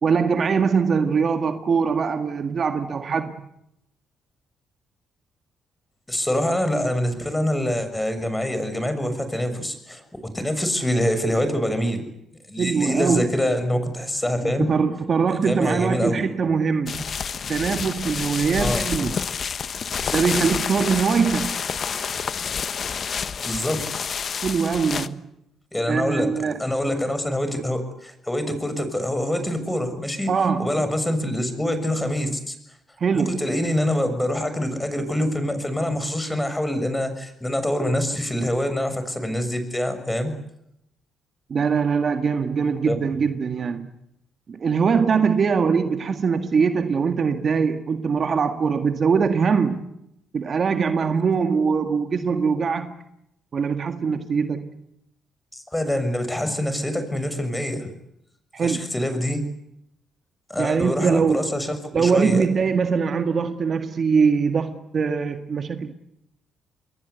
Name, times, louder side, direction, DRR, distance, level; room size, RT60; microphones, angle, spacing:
voice 1, 0.0-3.3 12.6-13.3 14.4-17.1 17.5-19.2 20.1-21.6 24.4-25.2 25.9-26.6 30.3-30.8 33.0-33.4 41.5-43.9 44.5-49.8 50.3-52.9 53.5-54.7 58.5-58.9 60.6-61.4 61.9-65.9, right 5 dB, 50° right, 1.9 m, -22 dB
voice 2, 6.1-10.0 10.3-12.1 12.5-14.7 15.3-16.2 18.6-19.1 23.4-23.8 25.7-26.3 26.6-30.3 30.6-32.5 33.1-40.3 42.9-43.0 55.5-57.9 58.6-59.4 60.5-62.5, left 1 dB, 10° left, 6.5 m, -25 dB
sound 1, 16.9-25.1, left 6 dB, 50° left, 1.2 m, -28 dB
28.0 x 22.0 x 8.3 m
cardioid pair, 90°, 0 cm